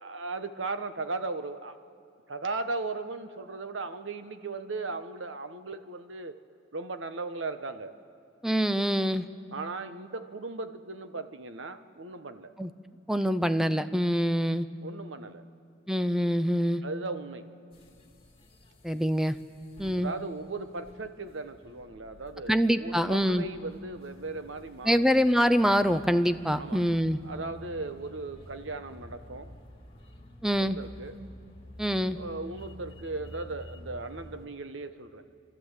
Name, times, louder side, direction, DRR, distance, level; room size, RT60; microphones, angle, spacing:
voice 1, 0.0-1.8 2.3-6.4 6.7-7.9 9.5-12.5 14.8-15.4 16.8-17.4 20.0-25.1 26.6-26.8 27.2-29.5 30.6-31.1 32.0-35.3, right 3 dB, 80° right, 10 dB, 1.1 m, -37 dB
voice 2, 8.4-9.2 12.6-12.7 13.1-14.7 15.9-16.8 18.8-19.4 19.8-20.1 22.5-23.4 24.9-27.2 30.4-30.8 31.8-32.2, equal, 5° right, 11 dB, 0.5 m, -25 dB
sound 1, 17.7-34.5, left 1 dB, 30° left, 2.5 m, -50 dB
29.5 x 12.5 x 8.2 m, 2.4 s
head